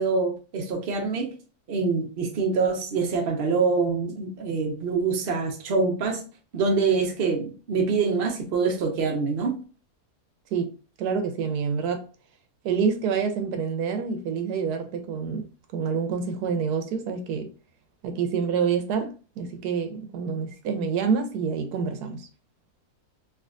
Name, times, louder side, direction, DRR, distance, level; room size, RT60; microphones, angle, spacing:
voice 1, 0.0-1.3 1.7-6.2 6.5-9.5, right 4 dB, 45° right, 0.9 m, -25 dB
voice 2, 11.0-12.0 12.6-15.5 15.7-17.5 18.0-22.3, right 6 dB, 80° right, 1.2 m, -27 dB
3.4 x 2.7 x 2.4 m
omnidirectional pair, 1.7 m